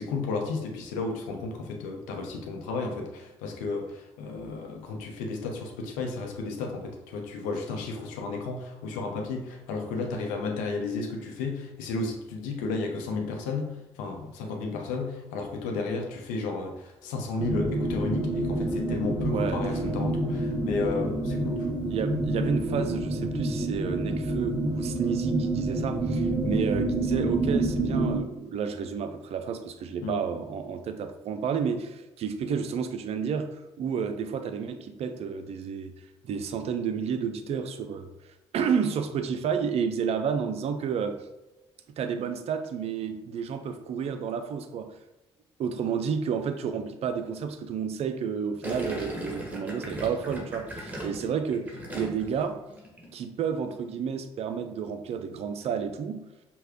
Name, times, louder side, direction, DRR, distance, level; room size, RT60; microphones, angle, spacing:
voice 1, 0.0-21.7 30.0-30.3, left 3 dB, 65° left, 2 dB, 0.7 m, -33 dB
sound 1, 17.4-28.2, right 2 dB, 30° right, 0.9 m, -28 dB
voice 2, 19.3-19.9 21.9-35.9 36.2-38.1 38.5-41.2 42.0-44.9 45.6-52.6 53.1-56.2, right 6 dB, 50° right, 8 dB, 0.5 m, -31 dB
Gurgling, 48.6-52.4 52.7-53.1, equal, 10° right, 1.3 m, -37 dB
5.4 x 2.3 x 3.6 m, 1.0 s
figure-of-eight pair, 45°, 14 cm